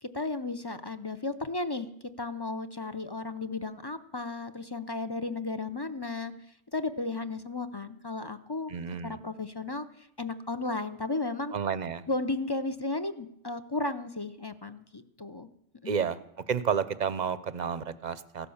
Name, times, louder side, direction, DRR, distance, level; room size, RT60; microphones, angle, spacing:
voice 1, 0.0-1.9 2.2-6.3 6.7-8.7 9.0-11.5 12.1-15.5 15.8-16.1, left 3 dB, 25° left, 11 dB, 0.5 m, -34 dB
voice 2, 8.7-9.2 11.5-12.0 15.9-16.2 16.5-18.5, right 7 dB, 45° right, 15 dB, 0.7 m, -30 dB
16.0 x 11.5 x 7.1 m, 0.77 s
omnidirectional pair, 1.2 m